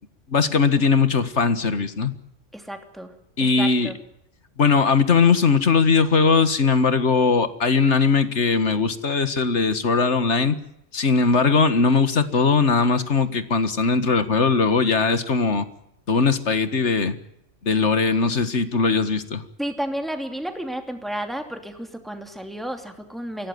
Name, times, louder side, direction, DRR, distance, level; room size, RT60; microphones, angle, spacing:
voice 1, 0.3-2.1 3.4-3.9 4.6-10.6 10.9-15.7 16.1-17.2 17.6-19.4, left 4 dB, 65° left, 12 dB, 1.9 m, -20 dB
voice 2, 2.5-3.1 3.4-4.0 19.6-23.5, right 1 dB, ahead, 6 dB, 2.9 m, -32 dB
24.0 x 17.0 x 9.5 m, 0.79 s
omnidirectional pair, 1.3 m